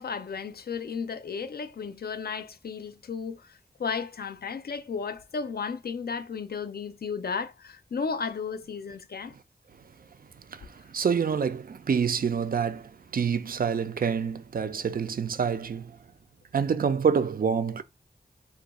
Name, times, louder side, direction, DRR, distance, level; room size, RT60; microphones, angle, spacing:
voice 1, 0.0-9.4, left 5 dB, 65° left, 0.4 m, -34 dB
voice 2, 10.5-16.0 16.5-17.8, right 6 dB, 60° right, 0.4 m, -27 dB
2.5 x 2.3 x 4.0 m
wide cardioid pair, 50°, 17 cm